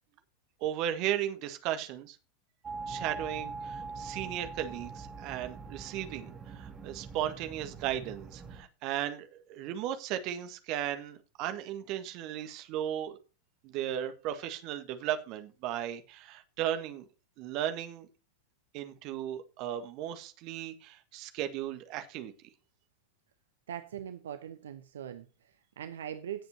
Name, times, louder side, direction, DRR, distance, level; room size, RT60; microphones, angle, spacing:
voice 1, 0.6-2.2 2.9-13.2 13.6-17.0 17.4-18.1 18.7-22.3, right 11 dB, 40° right, 1.7 m, -36 dB
sound 1, 2.6-8.6, right 4 dB, 20° right, 3.3 m, -42 dB
voice 2, 23.7-26.5, right 9 dB, 65° right, 0.9 m, -41 dB
17.5 x 7.9 x 2.8 m
figure-of-eight pair, 90°, 0 cm